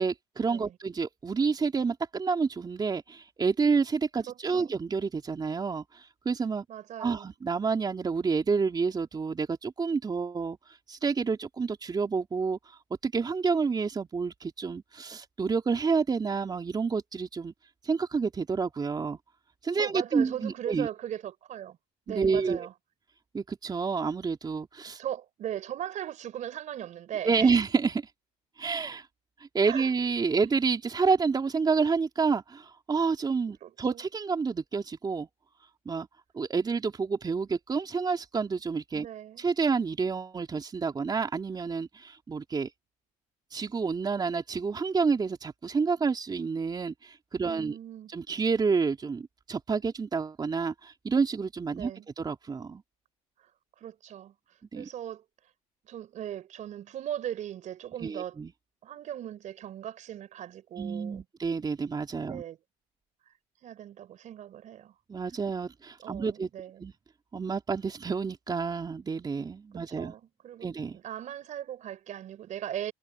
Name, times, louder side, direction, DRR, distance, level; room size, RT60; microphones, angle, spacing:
voice 1, 0.0-6.6 7.0-10.6 10.9-12.6 13.0-17.5 17.8-19.2 19.6-20.9 22.1-22.7 23.3-25.0 27.2-28.0 28.6-29.1 29.5-35.3 35.9-36.1 36.3-39.1 39.4-42.7 43.5-47.8 48.1-51.9 52.2-52.8 54.7-54.9 58.0-58.5 60.8-62.4 65.1-66.5 66.8-66.9 67.3-70.1 70.6-71.0, right 5 dB, 25° right, 3.6 m, -29 dB
voice 2, 4.3-4.8 6.7-7.3 19.8-21.8 22.1-22.7 25.0-27.6 29.6-29.9 33.6-34.0 39.0-39.4 47.4-48.1 51.7-52.1 53.4-53.5 53.8-55.2 55.8-58.4 58.8-61.2 62.3-62.6 63.6-64.9 66.0-66.8 69.7-72.9, right 11 dB, 55° right, 4.4 m, -38 dB
supercardioid pair, 90°, 15 cm